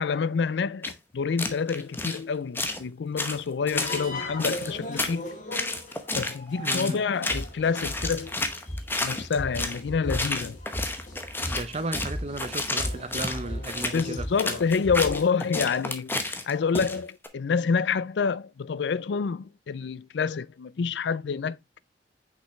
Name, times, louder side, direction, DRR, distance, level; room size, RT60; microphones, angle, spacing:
voice 1, 0.0-5.3 6.2-8.3 9.0-10.6 13.9-21.8, left 5 dB, 75° left, 0.4 m, -28 dB
sound 1, 0.8-0.9 1.4-2.2 2.5-2.8 3.2-4.1 4.4-5.2 5.5-6.4 6.6-7.0 7.2-7.5 7.7-9.8 10.1-17.3, left 2 dB, 10° left, 0.9 m, -31 dB
sound 2, 3.7-15.3, left 1 dB, 45° left, 2.7 m, -37 dB
voice 2, 6.6-7.0 11.5-14.6, right 2 dB, 35° right, 0.8 m, -35 dB
6.1 x 5.6 x 3.2 m
head